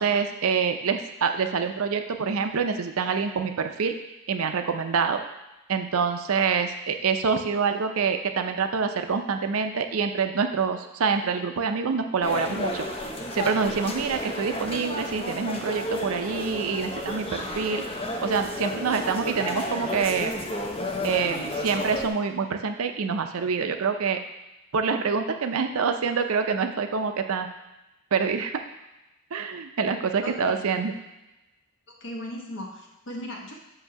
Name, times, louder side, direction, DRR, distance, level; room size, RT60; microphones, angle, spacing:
voice 1, 0.0-3.9 4.3-5.2 5.7-12.9 13.3-17.8 18.2-20.3 21.0-24.2 24.7-27.5 28.1-28.6 29.3-31.0, right 5 dB, 70° right, 6 dB, 0.5 m, -26 dB
sound 1, 12.2-22.1, left 1 dB, 25° left, 0.7 m, -32 dB
voice 2, 30.2-30.7 32.0-33.5, left 1 dB, 55° left, -1 dB, 1.2 m, -37 dB
7.7 x 2.7 x 5.8 m, 1.0 s
head